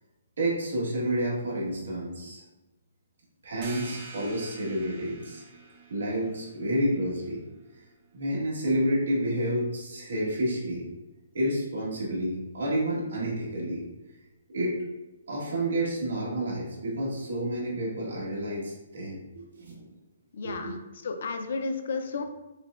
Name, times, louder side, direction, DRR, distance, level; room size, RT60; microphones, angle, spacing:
voice 1, 0.4-2.4 3.4-5.5 5.9-7.4 7.8-7.9 8.1-10.9 11.3-13.9 14.5-14.8 15.3-19.8 20.4-20.7, right 1 dB, 75° right, -5 dB, 1.4 m, -29 dB
sound 1, 3.6-9.0, right 3 dB, 25° right, 0.4 m, -48 dB
voice 2, 20.3-20.8 21.0-22.2, left 4 dB, 50° left, 6 dB, 0.5 m, -32 dB
5.5 x 2.2 x 2.5 m, 1.0 s
hypercardioid pair, 175°, 0 cm